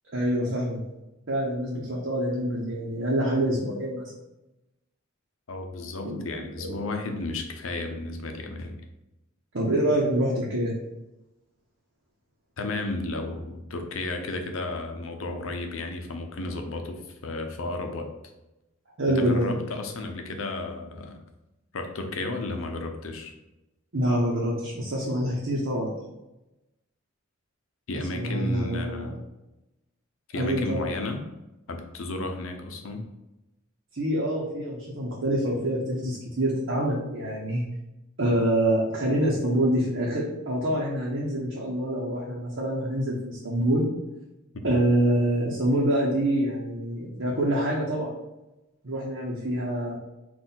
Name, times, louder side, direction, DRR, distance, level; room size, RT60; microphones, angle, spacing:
voice 1, 0.1-0.8 1.3-4.1 6.0-6.2 6.6-6.8 9.5-10.8 19.0-19.6 23.9-26.0 28.1-29.1 30.3-30.9 33.9-37.6 38.2-43.8 44.6-48.1 48.8-50.0, right 1 dB, 60° right, -6 dB, 0.9 m, -26 dB
voice 2, 5.5-8.8 12.6-18.1 19.1-21.2 21.7-23.3 27.9-29.1 30.3-31.2 31.7-33.0 44.6-44.8, left 2 dB, 75° left, 5 dB, 0.6 m, -33 dB
4.2 x 2.5 x 3.9 m, 0.97 s
head